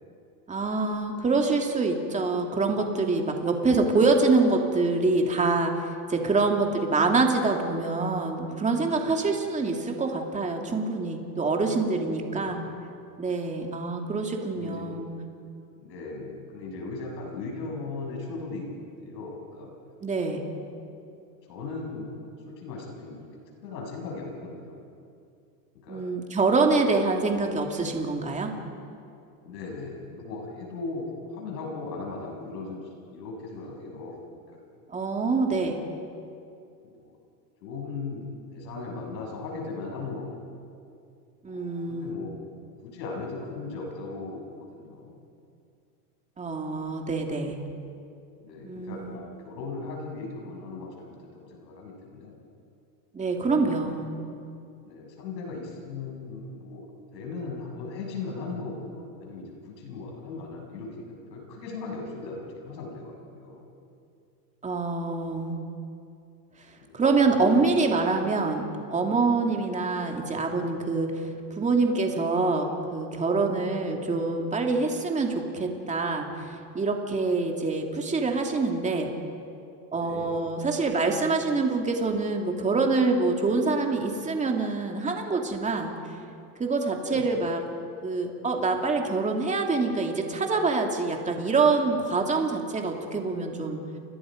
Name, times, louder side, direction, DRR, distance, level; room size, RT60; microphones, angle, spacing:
voice 1, 0.5-12.6 13.2-15.1 20.0-20.4 25.9-28.5 34.9-35.8 41.4-42.2 46.4-47.6 48.6-49.2 53.1-54.1 64.6-65.6 66.9-71.3 71.5-79.1 79.9-85.9 86.6-87.6 88.0-93.8, right 3 dB, 15° right, 2 dB, 2.6 m, -25 dB
voice 2, 12.2-12.7 14.5-14.8 15.8-19.7 20.3-20.9 21.5-23.3 23.6-24.8 25.7-26.0 29.4-34.2 35.5-36.0 36.9-37.1 37.6-38.3 38.5-40.3 41.5-42.4 42.8-45.2 48.4-52.4 53.4-54.1 54.9-56.8 57.1-63.6 66.8-67.7 69.4-69.6 79.9-80.3 87.0-87.3, left 3 dB, 90° left, 0 dB, 7.6 m, -38 dB
29.5 x 21.5 x 5.2 m, 2.5 s
supercardioid pair, 135°, 49 cm